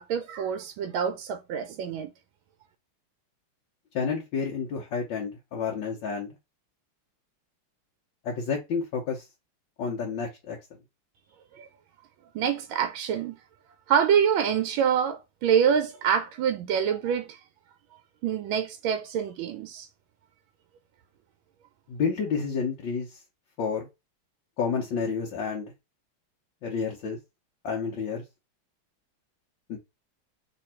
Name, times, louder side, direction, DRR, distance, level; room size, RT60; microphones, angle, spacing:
voice 1, 0.0-2.1 11.6-11.7 12.3-13.3 13.9-17.4 18.2-19.9, right 8 dB, 80° right, 1.4 m, -26 dB
voice 2, 3.9-6.3 8.2-9.2 9.8-10.6 21.9-23.2 23.6-23.9 24.6-25.7 26.6-27.2 27.6-28.2 29.7-29.8, left 5 dB, 70° left, 1.6 m, -30 dB
3.4 x 3.1 x 4.3 m
omnidirectional pair, 2.3 m